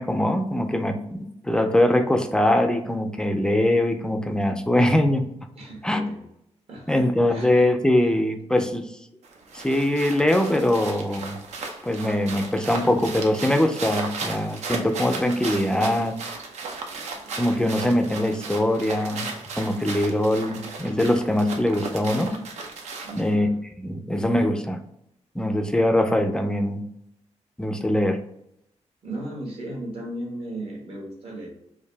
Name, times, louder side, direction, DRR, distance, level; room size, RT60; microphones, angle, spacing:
voice 1, 0.0-5.3 5.8-6.0 6.9-8.9 9.5-11.4 11.8-16.2 17.4-22.4 23.2-23.5 23.8-24.8 25.4-26.8 27.6-28.2, left 1 dB, 5° left, 6 dB, 0.4 m, -22 dB
voice 2, 5.5-6.2 6.7-7.0 7.3-7.5 23.0-23.6 29.0-31.5, right 1 dB, 55° right, -1 dB, 1.4 m, -35 dB
sound 1, 9.2-23.3, right 4 dB, 75° right, 0.7 m, -35 dB
4.7 x 2.6 x 3.3 m, 0.78 s
wide cardioid pair, 145°, 12 cm